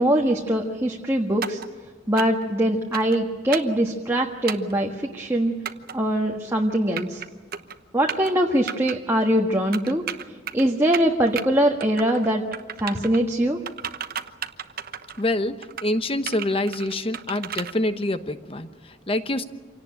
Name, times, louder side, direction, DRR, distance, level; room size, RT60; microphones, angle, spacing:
voice 1, 0.0-1.6 2.1-5.5 5.9-7.2 7.9-10.1 10.5-12.4 12.8-13.6, right 1 dB, 15° right, 0 dB, 1.6 m, -22 dB
sound 1, 1.4-1.7 2.2-2.5 2.9-3.2 3.5-3.8 4.5-4.7 5.7-5.9 6.7-7.3 7.5-7.8 8.1-8.3 8.7-9.0 9.7-10.6 10.9-11.4 11.8-12.3 12.5-13.2 13.7-15.2 15.6-15.9 16.3-17.7, right 8 dB, 50° right, 1.0 m, -33 dB
voice 2, 15.2-19.4, left 1 dB, 30° left, 10 dB, 1.1 m, -26 dB
26.5 x 18.0 x 9.9 m, 1.5 s
head